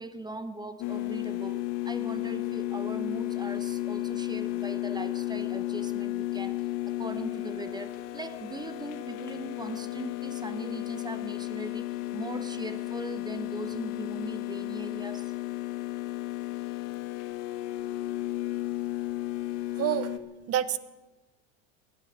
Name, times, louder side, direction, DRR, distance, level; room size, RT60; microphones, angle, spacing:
voice 1, 0.0-6.6 6.8-15.3, right 2 dB, 10° right, 12 dB, 1.0 m, -40 dB
sound 1, 0.8-20.2, left 16 dB, 60° left, 1.4 m, -33 dB
voice 2, 19.8-20.1 20.5-20.8, right 11 dB, 40° right, 16 dB, 1.0 m, -27 dB
18.5 x 11.5 x 6.3 m, 1.1 s
hypercardioid pair, 90°, 38 cm